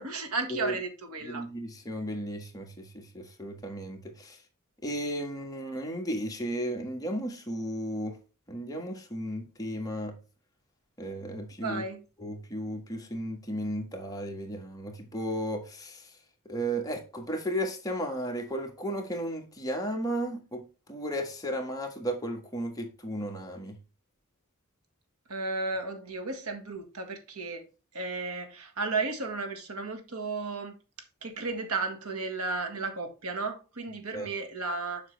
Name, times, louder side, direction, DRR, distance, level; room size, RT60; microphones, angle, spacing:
voice 1, 0.0-1.4 11.6-12.0 25.3-27.6 27.9-30.8 31.2-35.0, right 3 dB, 85° right, 1.6 m, -34 dB
voice 2, 1.2-4.4 4.8-8.2 8.5-10.2 11.0-11.8 12.2-16.1 16.5-23.8 34.1-34.3, equal, 15° left, 1.6 m, -34 dB
7.3 x 5.8 x 3.2 m
head